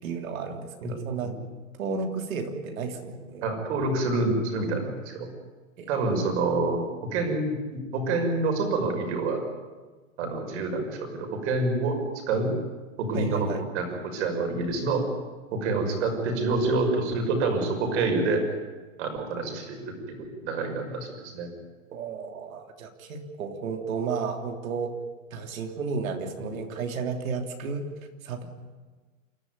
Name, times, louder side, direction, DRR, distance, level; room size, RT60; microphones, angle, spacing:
voice 1, 0.0-1.3 1.8-3.5 5.8-5.9 13.1-13.6 21.9-25.0 25.3-27.9 28.2-28.5, right 5 dB, 75° right, 4 dB, 3.3 m, -32 dB
voice 2, 0.8-1.3 3.4-5.3 5.9-9.4 10.2-12.5 13.0-13.5 13.7-15.1 15.5-18.5 19.0-20.2 20.4-21.5 26.4-26.5, right 3 dB, 55° right, 4 dB, 5.9 m, -27 dB
28.0 x 12.5 x 9.5 m, 1.3 s
hypercardioid pair, 150°, 41 cm